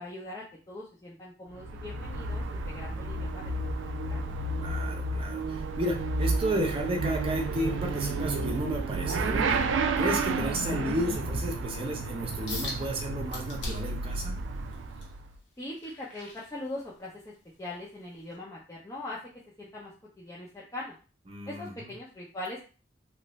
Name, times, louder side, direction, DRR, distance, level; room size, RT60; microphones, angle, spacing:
voice 1, 0.0-4.2 15.6-19.2 19.6-21.0 21.5-22.6, left 1 dB, 20° left, -6 dB, 0.6 m, -41 dB
Motorcycle / Accelerating revving vroom, 1.5-15.3, right 3 dB, 85° right, 0.4 m, -31 dB
voice 2, 4.6-9.6 10.0-14.3 21.3-21.8, equal, 30° right, 1 dB, 0.7 m, -32 dB
sound 1, 12.5-12.8 13.3-14.0 14.5-17.1 17.5-17.8 18.3-18.4, left 2 dB, 70° left, 1.1 m, -40 dB
3.1 x 2.5 x 3.1 m, 0.36 s
head